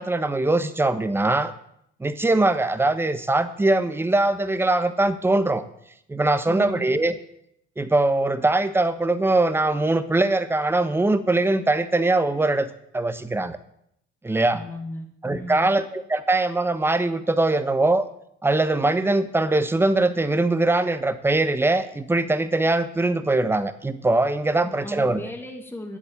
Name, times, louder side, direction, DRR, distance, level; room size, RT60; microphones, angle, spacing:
voice 1, 0.0-1.5 2.0-5.6 6.1-7.1 7.8-13.6 14.2-14.6 15.2-18.1 18.4-25.2, right 2 dB, 10° right, 11 dB, 1.1 m, -22 dB
voice 2, 6.5-6.9 14.5-15.7 24.5-26.0, equal, 10° left, 4 dB, 2.1 m, -35 dB
10.0 x 8.2 x 8.6 m, 0.73 s
cardioid pair, 100°, 20 cm